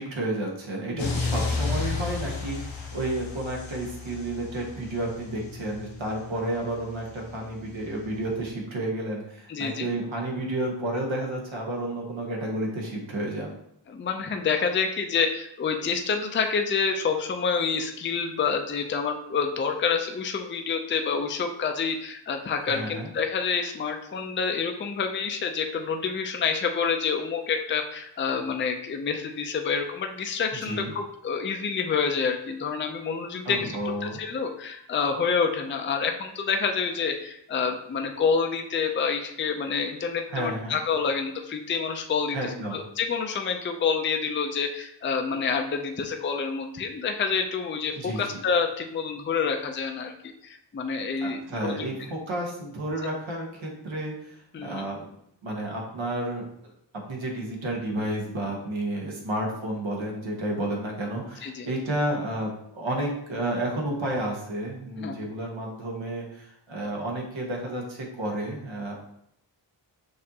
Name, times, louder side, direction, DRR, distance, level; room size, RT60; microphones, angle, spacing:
voice 1, 0.0-13.6 22.7-23.1 30.6-30.9 33.4-34.2 40.3-40.8 42.3-42.8 48.0-48.2 51.2-55.1 55.4-56.5 57.1-68.9, right 1 dB, 85° right, 0 dB, 1.1 m, -31 dB
sound 1, 1.0-8.5, left 4 dB, 80° left, 1.0 m, -33 dB
voice 2, 9.5-9.9 13.9-51.9 54.5-54.8 61.4-61.7 65.0-65.3, left 5 dB, 30° left, 4 dB, 0.4 m, -28 dB
6.5 x 2.5 x 2.8 m, 0.74 s
wide cardioid pair, 105°, 46 cm